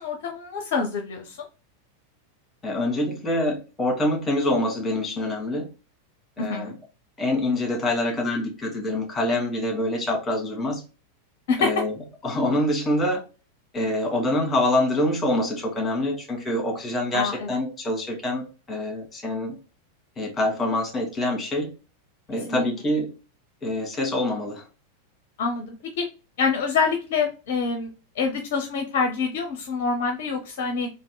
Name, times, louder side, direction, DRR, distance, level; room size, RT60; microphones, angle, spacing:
voice 1, 0.0-1.4 6.4-6.7 11.5-11.8 17.1-17.5 22.5-22.7 25.4-26.1 26.4-27.9 28.2-30.9, left 5 dB, 50° left, 4 dB, 0.6 m, -26 dB
voice 2, 2.6-5.7 6.4-6.7 7.2-10.8 11.6-11.9 12.2-13.2 13.7-19.6 20.2-21.7 22.3-23.1 23.6-24.6, left 1 dB, 20° left, 1 dB, 1.8 m, -25 dB
3.5 x 2.8 x 3.9 m, 0.32 s
figure-of-eight pair, 90°, 0 cm